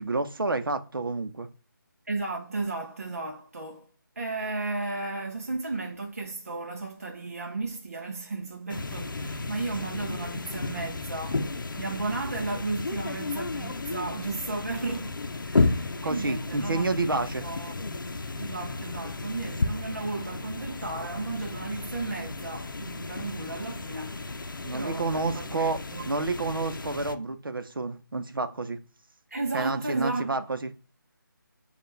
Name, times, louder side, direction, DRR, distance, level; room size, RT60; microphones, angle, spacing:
voice 1, 0.0-1.5 16.0-17.4 24.6-28.8 29.5-30.7, right 3 dB, 80° right, 0.7 m, -29 dB
voice 2, 2.1-3.9 4.2-15.2 15.4-17.8 18.4-25.5 25.9-26.1 29.3-30.3, right 3 dB, 45° right, 0.6 m, -34 dB
sound 1, 8.7-27.2, left 3 dB, 65° left, 0.6 m, -33 dB
6.8 x 2.4 x 3.3 m
figure-of-eight pair, 180°, 11 cm